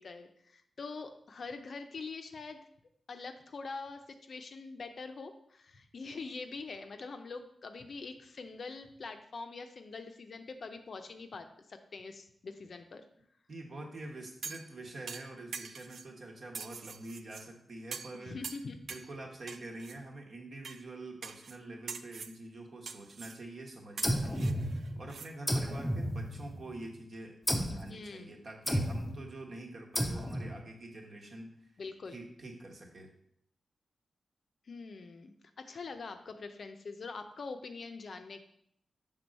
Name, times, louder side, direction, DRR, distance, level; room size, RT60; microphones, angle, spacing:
voice 1, 0.0-2.6 3.1-13.1 18.1-18.8 27.9-28.3 31.8-32.2 34.7-38.4, left 4 dB, 55° left, 7 dB, 0.5 m, -44 dB
voice 2, 13.5-18.4 18.9-31.7 32.1-33.1, right 2 dB, 50° right, 1 dB, 1.2 m, -46 dB
sound 1, 14.4-14.7 15.1-16.1 16.5-17.4 17.9-18.2 18.4-19.1 19.5-20.0 20.6-20.8 21.2-21.6 21.9-22.4 22.9-23.4 24.0-25.3 25.6-25.7, right 5 dB, 70° right, 0.3 m, -44 dB
sound 2, 24.0-25.1 25.5-26.8 27.5-27.9 28.7-29.2 30.0-30.6, equal, 10° left, 0.6 m, -32 dB
6.1 x 3.7 x 5.2 m, 0.71 s
wide cardioid pair, 135°, 0 cm